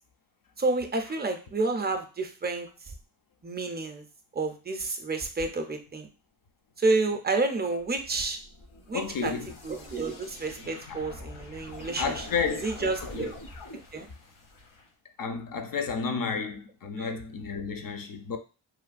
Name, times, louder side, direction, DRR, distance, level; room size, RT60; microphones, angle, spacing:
voice 1, 0.6-2.7 3.4-4.0 4.4-6.1 6.8-8.4 8.9-9.3 9.6-12.1 12.6-13.3 13.9-14.1 17.0-17.1, right 3 dB, 20° right, 0.4 m, -29 dB
sound 1, 7.8-14.9, left 2 dB, 65° left, 0.9 m, -45 dB
voice 2, 8.9-9.5 10.9-11.0 12.0-12.7 13.0-13.3 15.2-18.4, left 5 dB, 45° left, 0.5 m, -31 dB
3.1 x 2.2 x 2.4 m
cardioid pair, 80°, 48 cm